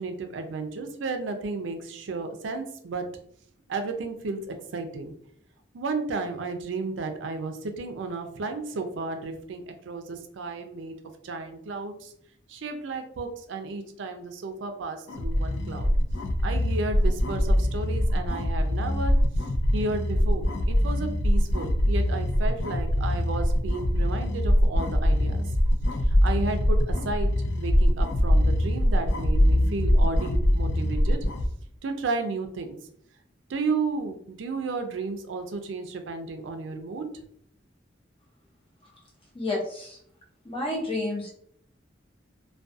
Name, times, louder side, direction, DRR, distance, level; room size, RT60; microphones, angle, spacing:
voice 1, 0.0-3.1 3.7-5.1 5.7-10.9 11.2-12.1 12.5-15.9 16.4-19.1 19.7-25.5 26.1-27.3 27.6-31.2 31.8-32.7 33.5-37.1, right 3 dB, 80° right, 6 dB, 0.4 m, -33 dB
sound 1, 15.1-31.5, equal, 70° left, 0.4 m, -23 dB
voice 2, 39.3-40.0 40.4-41.3, left 2 dB, 30° left, -2 dB, 0.7 m, -30 dB
2.3 x 2.2 x 2.6 m, 0.66 s
head